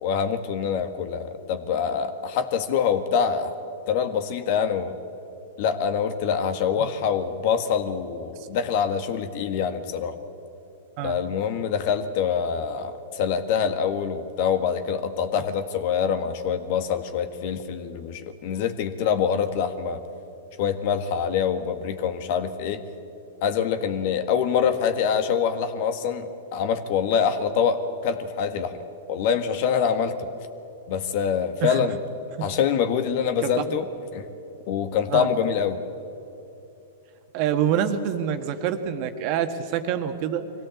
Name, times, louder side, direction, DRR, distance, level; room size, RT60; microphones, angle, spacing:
voice 1, 0.0-3.6 3.9-5.0 5.6-10.2 11.0-20.0 20.6-22.8 23.4-28.8 29.1-30.3 30.9-32.0 32.4-33.9 34.1-34.3 34.7-35.8, left 7 dB, 55° left, 10 dB, 1.6 m, -25 dB
voice 2, 33.4-33.8 35.1-35.3 37.3-40.5, right 9 dB, 45° right, 8 dB, 1.6 m, -26 dB
22.5 x 16.5 x 8.6 m, 2.8 s
hypercardioid pair, 110°, 0 cm